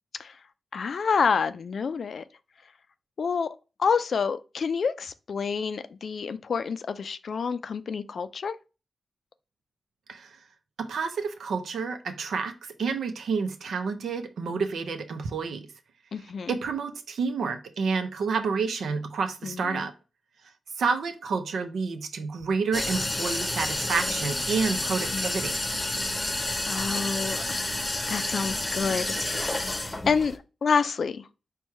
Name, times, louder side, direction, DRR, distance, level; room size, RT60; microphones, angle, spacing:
voice 1, 0.7-2.2 3.2-8.6 16.1-16.5 19.4-19.9 25.1-25.5 26.7-27.7 28.1-29.8 30.1-31.3, left 5 dB, 70° left, 0.4 m, -28 dB
voice 2, 10.8-15.7 16.5-19.9 20.8-25.6, right 5 dB, 80° right, 0.6 m, -29 dB
sound 1, 22.7-30.4, left 1 dB, 25° left, 0.7 m, -30 dB
4.5 x 2.3 x 4.4 m
cardioid pair, 45°, 0 cm